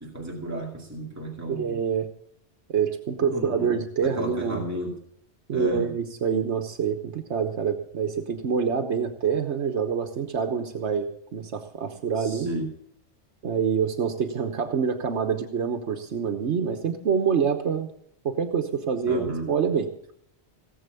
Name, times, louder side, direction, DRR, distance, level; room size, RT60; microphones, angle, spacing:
voice 1, 0.0-1.8 3.2-3.7 4.0-4.9 5.5-5.9 12.2-12.7 19.1-19.5, equal, 15° right, -2 dB, 2.4 m, -33 dB
voice 2, 1.5-2.1 2.7-4.6 5.5-12.5 13.4-17.9 18.2-19.9, right 6 dB, 90° right, 5 dB, 1.4 m, -26 dB
18.0 x 7.7 x 6.9 m, 0.70 s
omnidirectional pair, 1.1 m